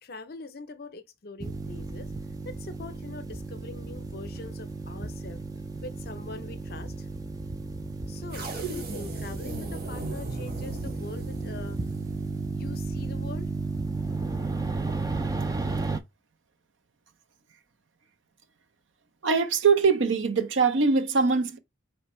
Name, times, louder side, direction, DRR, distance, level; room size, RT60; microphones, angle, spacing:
voice 1, 0.0-2.1 2.4-5.4 5.8-7.1 8.1-11.8 12.5-13.5, left 3 dB, 50° left, 0.6 m, -43 dB
sound 1, 1.4-16.0, right 3 dB, 20° right, 0.3 m, -33 dB
sound 2, 8.3-12.6, right 4 dB, 50° right, 1.2 m, -39 dB
voice 2, 19.2-21.6, right 5 dB, 75° right, 0.6 m, -22 dB
4.3 x 3.2 x 3.0 m
head